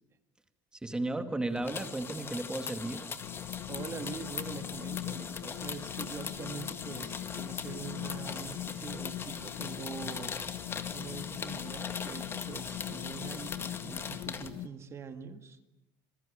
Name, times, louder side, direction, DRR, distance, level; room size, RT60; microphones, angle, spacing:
voice 1, 0.8-3.0, right 2 dB, 10° right, 7 dB, 2.3 m, -34 dB
sound 1, 1.6-14.5, left 6 dB, 25° left, 1.8 m, -41 dB
sound 2, 3.2-14.7, left 13 dB, 60° left, 1.4 m, -41 dB
voice 2, 3.7-10.4 10.9-15.6, right 6 dB, 30° right, 8 dB, 1.9 m, -44 dB
27.5 x 21.5 x 8.7 m, 0.91 s
cardioid pair, 140°, 10 cm